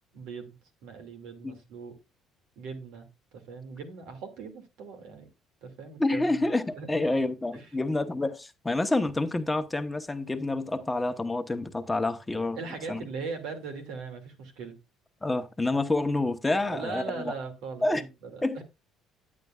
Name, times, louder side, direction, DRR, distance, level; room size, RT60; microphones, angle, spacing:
voice 1, 0.1-0.5 0.8-2.0 2.6-5.3 5.6-6.5 6.8-7.1 7.5-7.7 12.5-14.8 16.7-18.6, right 4 dB, 75° right, 2.3 m, -40 dB
voice 2, 6.0-12.6 12.9-13.0 15.2-17.3 17.8-18.0 18.4-18.6, left 2 dB, 15° left, 1.0 m, -28 dB
10.5 x 8.5 x 2.4 m
hypercardioid pair, 65°, 0 cm